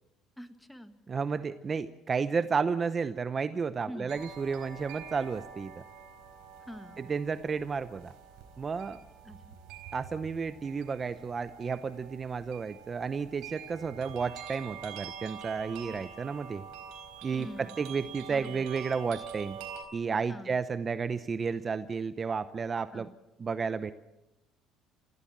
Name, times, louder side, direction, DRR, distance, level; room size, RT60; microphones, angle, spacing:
voice 1, 0.4-0.9 3.9-4.1 6.7-7.0 9.2-9.6 17.3-17.8 18.3-18.7 20.3-20.6 22.9-23.1, equal, 5° left, 9 dB, 1.9 m, -45 dB
voice 2, 1.1-5.7 7.0-8.1 8.6-9.0 9.9-16.7 17.2-19.6 19.9-23.1 23.4-23.9, right 5 dB, 30° right, 13 dB, 0.8 m, -32 dB
sound 1, 4.1-19.8, right 7 dB, 80° right, 3.9 m, -46 dB
27.0 x 16.0 x 7.4 m, 0.95 s
cardioid pair, 100°, 0 cm